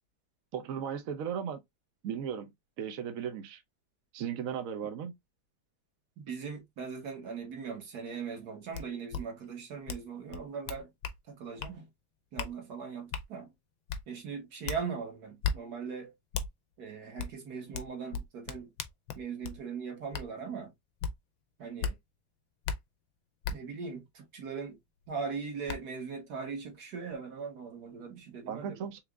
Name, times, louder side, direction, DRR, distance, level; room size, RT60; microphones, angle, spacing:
voice 1, 0.5-1.6 2.0-2.5 2.8-3.6 4.1-5.1 28.5-29.0, right 8 dB, 70° right, 0.8 m, -36 dB
voice 2, 6.2-10.9 11.3-11.9 12.3-13.5 14.1-16.1 16.8-18.7 19.1-20.7 21.6-22.0 23.5-24.8 25.1-29.0, right 5 dB, 50° right, 1.8 m, -40 dB
sound 1, 8.7-8.8 9.1-9.2 9.9-10.0 10.3-11.2 11.6-11.7 12.4-12.5 13.1-13.3 13.9-14.0 14.7-14.8 15.4-15.6 16.3-16.5 17.2-17.3 17.7-19.6 20.1-20.3 21.0-21.1 21.8-21.9 22.6-22.8 23.4-23.6 25.1-25.2 25.7-25.8, left 6 dB, 80° left, 1.4 m, -35 dB
4.4 x 3.4 x 2.3 m
omnidirectional pair, 2.2 m